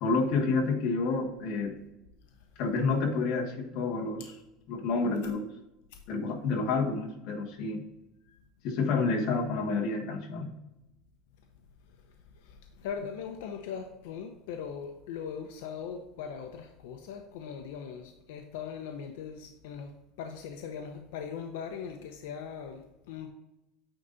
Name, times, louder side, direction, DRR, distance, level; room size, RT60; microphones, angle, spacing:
voice 1, 0.0-1.8 2.6-4.3 4.7-5.5 6.1-7.8 8.6-10.6, left 4 dB, 50° left, 0 dB, 1.5 m, -29 dB
voice 2, 12.4-23.3, left 7 dB, 85° left, 4 dB, 0.7 m, -40 dB
9.0 x 4.0 x 3.9 m, 0.93 s
cardioid pair, 175°, 0 cm